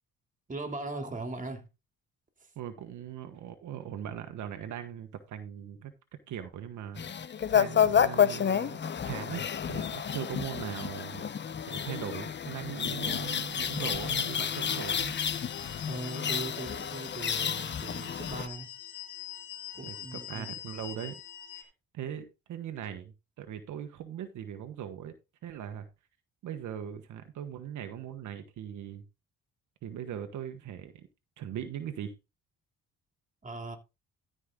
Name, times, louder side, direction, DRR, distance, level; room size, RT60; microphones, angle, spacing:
voice 1, 0.5-1.7 15.8-18.7 19.7-20.5 33.4-33.8, right 2 dB, 25° right, 2.7 m, -39 dB
voice 2, 2.5-5.9 6.3-8.8 9.0-11.2 11.7-15.1 19.8-21.2 21.5-25.1 25.4-25.9 26.4-29.0 29.8-31.1 31.4-32.1, right 9 dB, 75° right, 1.4 m, -40 dB
sound 1, 7.0-18.5, left 8 dB, 35° left, 0.8 m, -30 dB
sound 2, 12.6-21.6, left 11 dB, 80° left, 2.2 m, -45 dB
13.5 x 5.3 x 3.8 m
cardioid pair, 90°, 30 cm